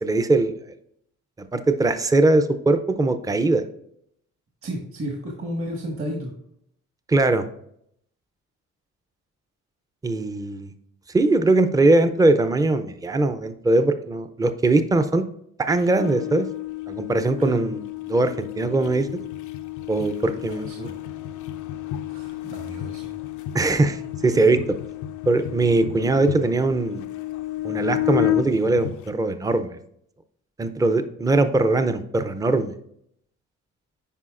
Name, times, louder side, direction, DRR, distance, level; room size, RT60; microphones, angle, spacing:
voice 1, 0.0-0.6 1.5-3.6 7.1-7.4 10.0-10.7 11.1-15.2 15.6-16.5 16.9-19.1 19.9-20.9 23.5-24.6 25.3-27.1 27.6-29.8 30.6-32.7, right 2 dB, 10° right, 9 dB, 0.5 m, -21 dB
voice 2, 4.6-6.3 17.4-17.6 20.3-21.0 22.1-23.1, equal, 45° right, 1 dB, 1.6 m, -33 dB
sound 1, 15.7-29.1, left 14 dB, 80° left, 0.5 m, -31 dB
9.9 x 4.6 x 2.5 m, 0.71 s
cardioid pair, 90°, 30 cm